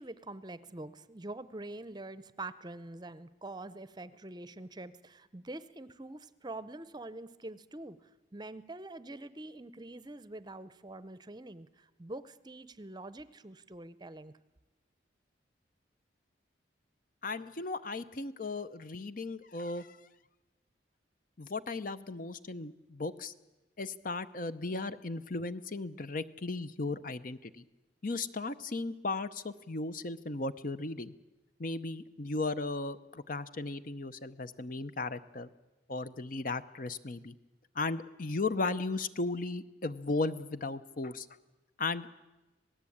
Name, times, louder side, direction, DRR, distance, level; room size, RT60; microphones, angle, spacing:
voice 1, 0.0-14.3, right 2 dB, 20° right, 15 dB, 0.7 m, -45 dB
voice 2, 17.2-20.0 21.4-23.3 23.8-27.6 28.0-31.1 31.6-35.5 35.9-37.3 37.8-41.3 41.8-42.1, left 3 dB, 45° left, 13 dB, 0.8 m, -36 dB
26.5 x 18.5 x 8.7 m, 1.1 s
head